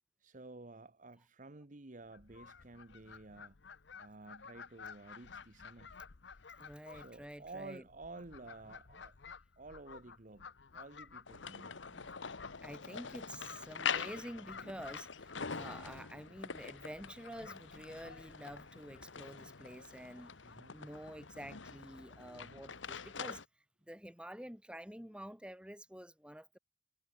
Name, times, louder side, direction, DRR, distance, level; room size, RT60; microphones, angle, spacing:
voice 1, 0.2-3.6 4.0-6.0 6.9-9.2 9.6-12.1 14.6-14.7 20.4-20.8 22.4-22.7, right 2 dB, 45° right, 1.1 m, -52 dB
Fowl, 2.1-19.4, left 5 dB, 70° left, 0.9 m, -54 dB
voice 2, 6.6-7.8 12.5-20.4 20.7-23.4 23.8-26.6, equal, 5° right, 3.8 m, -49 dB
sound 1, 11.3-23.4, left 6 dB, 85° left, 1.4 m, -44 dB
head